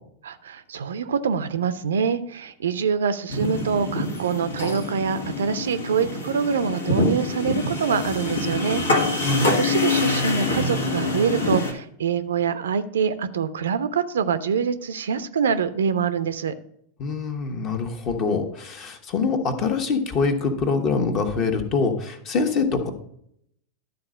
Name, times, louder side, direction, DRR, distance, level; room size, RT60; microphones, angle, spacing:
voice 1, 0.2-8.8 9.5-16.6, right 6 dB, 65° right, 13 dB, 0.5 m, -25 dB
sound 1, 3.3-11.7, left 2 dB, 70° left, 1.6 m, -25 dB
voice 2, 17.0-22.9, left 4 dB, 35° left, 5 dB, 1.3 m, -24 dB
12.0 x 4.1 x 6.3 m, 0.71 s
figure-of-eight pair, 90°, 0 cm